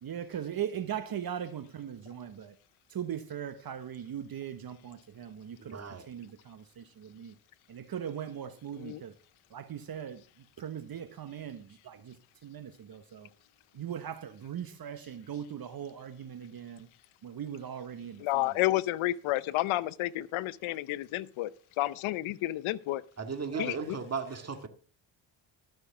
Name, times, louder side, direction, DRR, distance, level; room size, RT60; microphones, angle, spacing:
voice 1, 0.0-2.6 2.9-7.3 7.7-9.1 9.5-10.2 10.6-12.2 12.4-13.3 13.7-16.9 17.2-18.6 23.5-23.9 24.3-24.4, right 9 dB, 45° right, 1.1 m, -39 dB
voice 2, 5.7-6.1 23.2-24.7, right 5 dB, 30° right, 2.0 m, -36 dB
voice 3, 18.2-21.5 21.8-23.0 23.6-24.0, left 16 dB, 80° left, 0.8 m, -31 dB
12.5 x 6.5 x 5.9 m
supercardioid pair, 70°, 48 cm